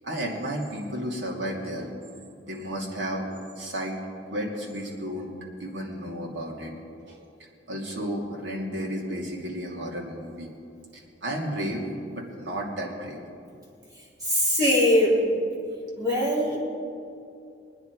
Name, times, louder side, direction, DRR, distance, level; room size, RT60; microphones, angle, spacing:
voice 1, 0.0-2.0 2.4-4.0 4.3-6.8 7.1-7.2 7.7-10.5 10.9-11.9 12.1-13.2, equal, 85° right, -1 dB, 2.7 m, -33 dB
voice 2, 14.2-15.3 16.0-16.6, left 1 dB, 20° right, -6 dB, 3.6 m, -21 dB
23.5 x 9.7 x 4.7 m, 2.5 s
head